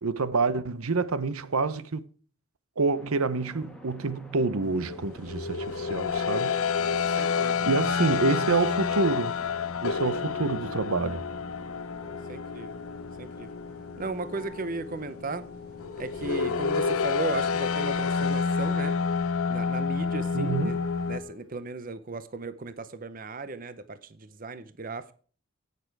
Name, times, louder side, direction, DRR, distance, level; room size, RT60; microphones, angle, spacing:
voice 1, 0.0-2.0 2.8-6.5 6.9-9.4 9.8-11.2 20.3-20.8, right 3 dB, 80° right, 0.8 m, -28 dB
sound 1, 2.9-21.0, equal, 5° left, 1.5 m, -52 dB
sound 2, 4.8-21.2, left 5 dB, 75° left, 0.7 m, -29 dB
voice 2, 6.8-7.7 12.3-12.8 13.2-13.5 14.0-15.4 16.0-19.0 19.5-20.8 21.1-25.1, right 3 dB, 40° right, 0.6 m, -36 dB
Wind instrument woodwind instrument, 11.8-21.6, left 8 dB, 20° left, 1.2 m, -45 dB
16.5 x 6.8 x 4.7 m
head